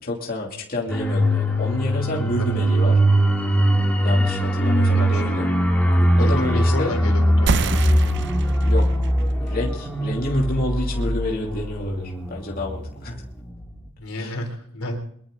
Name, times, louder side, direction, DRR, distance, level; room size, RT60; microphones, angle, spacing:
voice 1, 0.0-3.0 4.0-5.5 6.2-7.0 8.6-8.9 9.4-13.2 14.2-14.4, left 1 dB, 45° left, -2 dB, 2.8 m, -28 dB
sound 1, 0.9-13.2 13.5-13.7, equal, 5° left, 2.2 m, -21 dB
voice 2, 4.9-5.4 6.2-7.8 14.0-15.0, left 1 dB, 90° left, 3 dB, 3.8 m, -32 dB
sound 2, 7.5-12.6, right 4 dB, 55° right, 0.7 m, -29 dB
23.0 x 13.0 x 3.9 m, 0.66 s
head